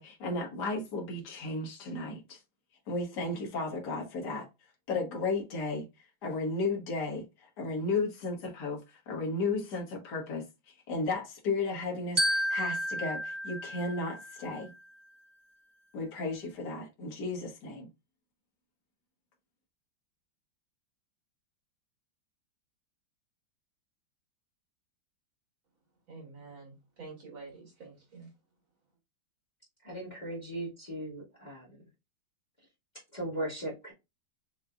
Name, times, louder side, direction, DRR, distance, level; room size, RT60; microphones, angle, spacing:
voice 1, 0.0-2.4 2.9-4.5 4.9-5.9 6.2-10.5 10.9-14.7 15.9-17.9, left 3 dB, 55° left, 2.0 m, -34 dB
Glockenspiel, 12.2-14.6, equal, 25° right, 1.0 m, -32 dB
voice 2, 26.1-28.3, right 4 dB, 75° right, 3.2 m, -48 dB
voice 3, 29.8-31.7 33.1-33.9, right 1 dB, 20° left, 2.0 m, -37 dB
6.6 x 3.1 x 2.4 m
omnidirectional pair, 2.2 m